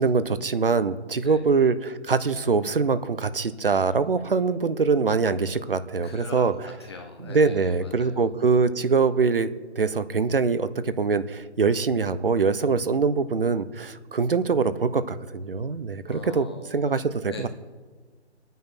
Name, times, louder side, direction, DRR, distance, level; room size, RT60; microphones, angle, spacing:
voice 1, 0.0-6.5 7.2-9.5 9.8-17.5, right 4 dB, 50° right, 13 dB, 1.1 m, -23 dB
voice 2, 6.0-8.3 16.1-16.8 17.3-17.5, left 4 dB, 25° left, 3 dB, 1.1 m, -42 dB
24.0 x 9.5 x 6.1 m, 1.4 s
figure-of-eight pair, 150°, 34 cm